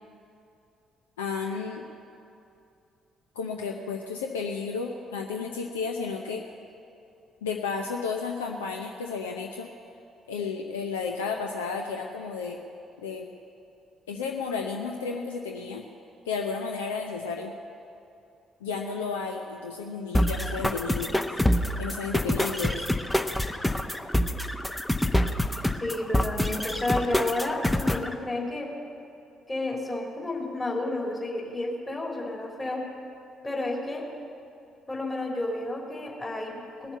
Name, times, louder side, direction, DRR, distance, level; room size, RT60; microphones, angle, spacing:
voice 1, 1.2-1.8 3.4-6.4 7.4-9.7 10.3-12.6 13.0-13.3 14.1-15.8 16.3-17.5 18.6-21.2 21.8-22.9, left 5 dB, 75° left, 2 dB, 0.7 m, -32 dB
sound 1, 20.1-28.1, left 1 dB, 10° left, 0.8 m, -26 dB
voice 2, 25.8-28.7 29.5-32.8 33.4-34.1 34.9-37.0, left 2 dB, 25° left, -2 dB, 3.4 m, -31 dB
19.5 x 7.1 x 8.1 m, 2.7 s
figure-of-eight pair, 45°, 0 cm